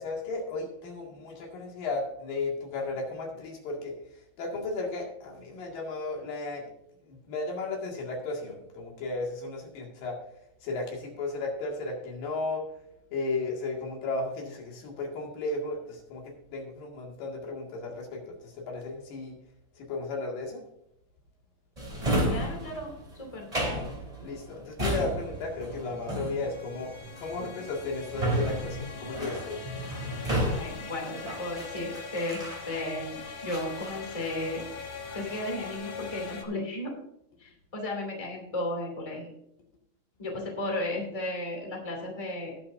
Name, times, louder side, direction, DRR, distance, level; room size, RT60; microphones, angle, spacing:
voice 1, 0.0-3.9 4.4-6.7 7.0-10.2 10.6-12.6 13.1-16.2 16.5-19.4 19.8-20.6 24.2-29.6, left 3 dB, 75° left, 0 dB, 3.8 m, -34 dB
Drawer open or close, 21.8-33.0 33.5-34.7 35.1-35.6, equal, 10° right, 2.6 m, -33 dB
voice 2, 22.3-23.5 30.5-34.6 35.1-36.9 37.4-39.3 40.2-42.6, left 1 dB, 10° left, 0 dB, 2.3 m, -34 dB
sound 1, 25.2-36.4, left 4 dB, 55° left, 2.1 m, -42 dB
19.5 x 7.3 x 2.6 m, 0.78 s
omnidirectional pair, 4.0 m